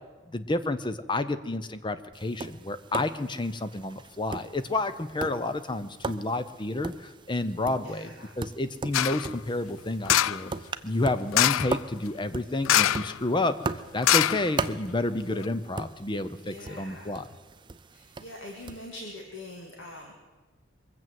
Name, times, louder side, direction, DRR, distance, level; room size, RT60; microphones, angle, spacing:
voice 1, 0.3-8.1 8.4-10.5 10.8-17.2, left 2 dB, 25° left, 12 dB, 0.6 m, -30 dB
Tap, 2.1-18.9, right 3 dB, 25° right, 0.4 m, -39 dB
voice 2, 7.8-8.3 16.4-17.2 17.9-20.1, left 1 dB, 65° left, 0 dB, 1.9 m, -43 dB
sound 1, 8.9-9.3 10.1-10.5 11.3-11.8 12.6-13.2 13.4-13.5 14.0-14.9 15.4-15.5, left 12 dB, 90° left, 0.4 m, -23 dB
22.5 x 7.8 x 7.6 m, 1.3 s
head